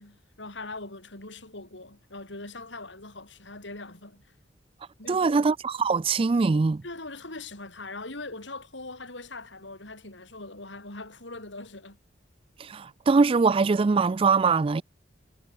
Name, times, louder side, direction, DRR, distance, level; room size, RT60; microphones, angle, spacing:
voice 1, 0.0-4.3 5.0-5.5 6.8-12.0, left 2 dB, 75° left, 5.7 m, -41 dB
voice 2, 5.1-6.8 12.6-14.8, right 4 dB, 30° right, 0.4 m, -22 dB
head